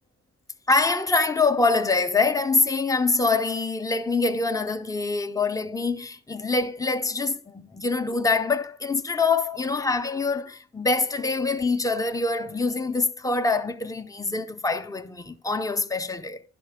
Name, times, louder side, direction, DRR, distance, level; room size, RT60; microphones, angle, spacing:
voice 1, 0.7-16.4, left 3 dB, 10° left, 0.7 m, -25 dB
11.0 x 5.9 x 3.6 m
cardioid pair, 90°, 30 cm